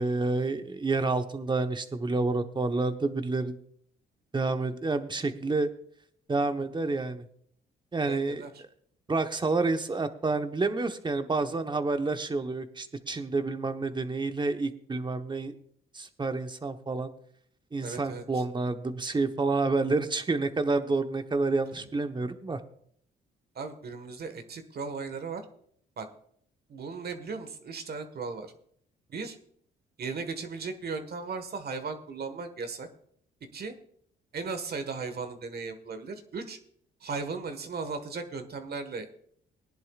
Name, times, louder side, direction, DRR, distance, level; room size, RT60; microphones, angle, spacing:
voice 1, 0.0-3.6 4.3-5.7 6.3-7.3 7.9-8.4 9.1-15.5 15.9-17.1 17.7-22.6, right 3 dB, 25° right, 8 dB, 1.0 m, -29 dB
voice 2, 8.1-8.6 17.8-18.4 21.7-21.9 23.5-25.4 26.0-26.1 26.7-28.5 29.1-29.4 30.0-32.9 33.5-33.7 34.3-36.6 37.0-39.1, right 4 dB, 50° right, 8 dB, 1.5 m, -37 dB
20.0 x 10.5 x 2.4 m, 0.65 s
cardioid pair, 90°, 20 cm